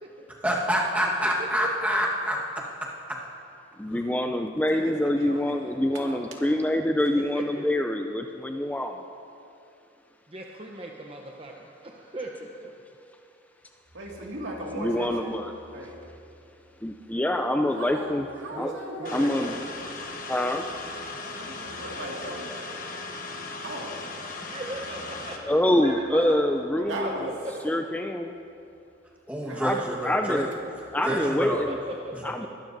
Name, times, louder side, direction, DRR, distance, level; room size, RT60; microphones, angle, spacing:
voice 1, 0.4-2.4 29.3-30.5 31.0-31.6, equal, 5° right, -3 dB, 1.3 m, -27 dB
voice 2, 3.8-9.0 14.8-15.5 16.8-18.2 18.5-18.7 19.1-19.6 20.3-20.6 25.4-27.2 27.6-28.3 29.6-30.5 30.9-31.8 32.2-32.5, left 1 dB, 10° left, 4 dB, 0.3 m, -25 dB
voice 3, 4.7-6.7 7.0-7.1 13.9-16.0 17.7-19.5 21.3-22.4 23.6-24.0 26.8-27.3 29.4-29.6, right 1 dB, 80° right, -1 dB, 2.0 m, -38 dB
voice 4, 10.3-12.3 12.6-12.7 18.5-19.6 19.8-19.9 24.4-25.4 25.7-26.3 26.8-27.9 31.0-32.5, right 2 dB, 30° right, 0 dB, 0.7 m, -38 dB
sound 1, 19.0-25.4, left 3 dB, 45° left, 1.1 m, -37 dB
21.0 x 13.0 x 2.6 m, 2.6 s
head